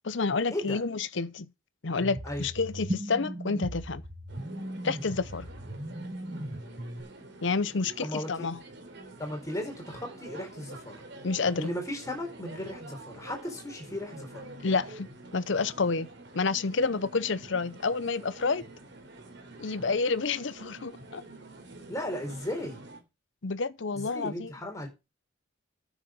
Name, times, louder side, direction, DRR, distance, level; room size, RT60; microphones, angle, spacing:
voice 1, 0.0-1.5 1.8-4.0 4.8-5.5 7.4-8.6 11.2-11.7 14.6-16.1 16.3-18.6 19.6-21.2 23.4-24.5, left 4 dB, 65° left, 0.7 m, -29 dB
sound 1, 2.0-7.0, right 1 dB, 25° right, 1.5 m, -37 dB
sound 2, 4.3-23.0, right 2 dB, 60° right, 3.5 m, -47 dB
voice 2, 8.0-8.5 9.2-11.0 11.6-14.5 21.9-22.8 23.9-24.9, left 1 dB, 15° left, 4.3 m, -36 dB
10.0 x 7.3 x 6.3 m
head